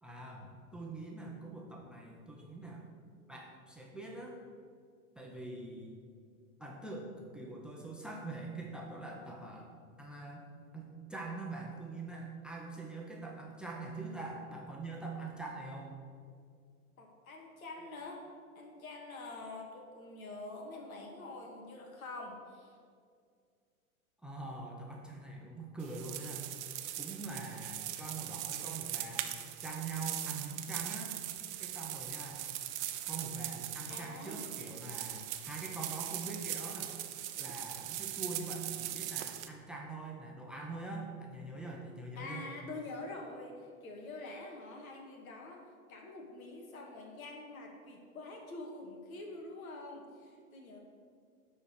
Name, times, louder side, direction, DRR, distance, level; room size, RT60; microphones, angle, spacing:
voice 1, 0.0-2.9 3.3-4.4 5.2-6.0 6.6-9.7 10.0-10.5 10.7-16.0 24.2-26.5 27.0-29.3 29.6-31.1 31.6-32.5 33.1-36.9 37.4-42.5, right 3 dB, ahead, -1 dB, 1.0 m, -44 dB
voice 2, 17.0-18.3 18.6-22.8 33.9-34.5 42.2-45.6 45.9-50.8, left 2 dB, 70° left, 1 dB, 2.1 m, -46 dB
sound 1, 25.8-39.5, right 12 dB, 50° right, 0.8 m, -40 dB
10.0 x 4.4 x 6.5 m, 2.2 s
hypercardioid pair, 105°, 44 cm